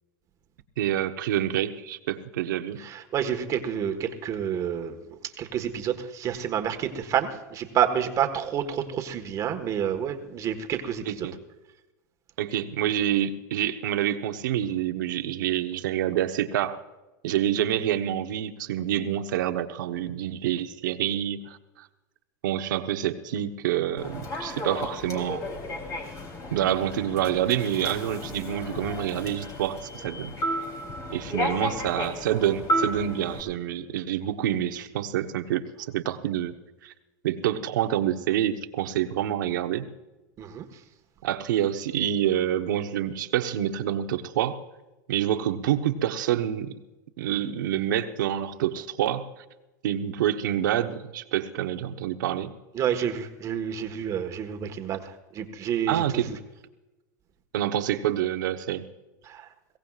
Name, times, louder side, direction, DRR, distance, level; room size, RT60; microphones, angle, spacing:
voice 1, 0.8-2.8 11.1-11.3 12.4-16.8 17.2-21.9 22.4-25.4 26.5-30.3 31.1-36.5 36.8-36.9 37.2-39.9 41.2-44.6 45.1-46.8 47.2-49.3 49.8-52.5 55.9-56.4 57.5-58.8, right 11 dB, 80° right, 8 dB, 1.1 m, -27 dB
voice 2, 2.8-5.0 5.4-11.3 40.4-40.7 52.7-56.0 59.2-59.5, right 9 dB, 30° right, 6 dB, 1.5 m, -29 dB
Human voice / Subway metro underground, 24.0-33.4, equal, 35° left, 3.5 m, -33 dB
22.0 x 17.0 x 2.4 m, 1.0 s
supercardioid pair, 130°, 10 cm